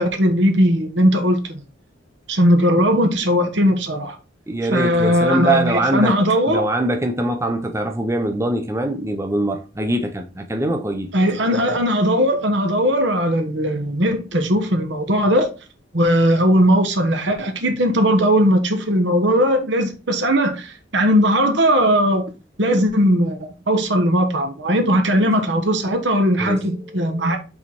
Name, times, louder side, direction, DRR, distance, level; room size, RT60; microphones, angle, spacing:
voice 1, 0.0-1.6 2.3-4.2 4.7-6.7 11.1-15.5 15.9-22.2 22.6-27.4, equal, 70° right, 1.3 m, -18 dB
voice 2, 4.5-6.1 6.5-11.1 26.4-26.6 27.2-27.3, right 1 dB, 15° right, 0.5 m, -22 dB
5.5 x 4.1 x 4.4 m
head